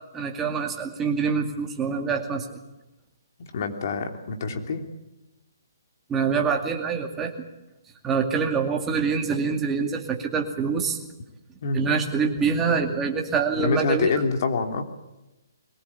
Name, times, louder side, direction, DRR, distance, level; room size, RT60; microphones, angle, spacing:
voice 1, 0.1-2.6 6.1-7.3 8.0-11.0 11.7-14.1, right 5 dB, 10° right, 2 dB, 2.3 m, -25 dB
voice 2, 3.5-4.8 11.6-11.9 13.6-14.8, left 4 dB, 50° left, 5 dB, 3.1 m, -26 dB
22.5 x 19.5 x 8.6 m, 0.98 s
hypercardioid pair, 160°, 2 cm